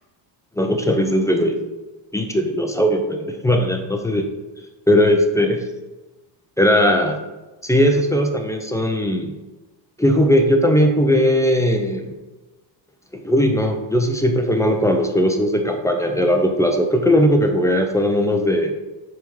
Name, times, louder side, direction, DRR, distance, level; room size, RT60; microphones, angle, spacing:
voice 1, 0.6-1.6 2.1-4.3 4.9-5.6 6.6-7.2 7.6-9.3 10.0-12.1 13.1-18.7, equal, 5° left, 3 dB, 0.5 m, -18 dB
7.7 x 3.5 x 5.4 m, 1.1 s
cardioid pair, 145°, 47 cm